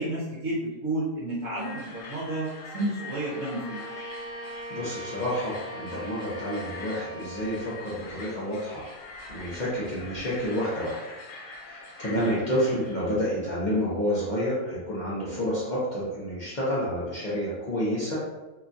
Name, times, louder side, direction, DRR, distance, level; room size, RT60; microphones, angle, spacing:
voice 1, 0.0-2.5 2.7-3.8 12.2-12.4, right 1 dB, 60° right, -8 dB, 1.0 m, -31 dB
sound 1, 1.6-13.3, left 3 dB, 80° left, 1.1 m, -44 dB
Bowed string instrument, 2.9-7.8, right 1 dB, 10° right, 0.6 m, -41 dB
voice 2, 4.4-8.9 9.3-11.0 11.6-18.2, equal, 55° left, -8 dB, 0.5 m, -29 dB
3.1 x 2.3 x 2.5 m, 1.1 s
omnidirectional pair, 1.6 m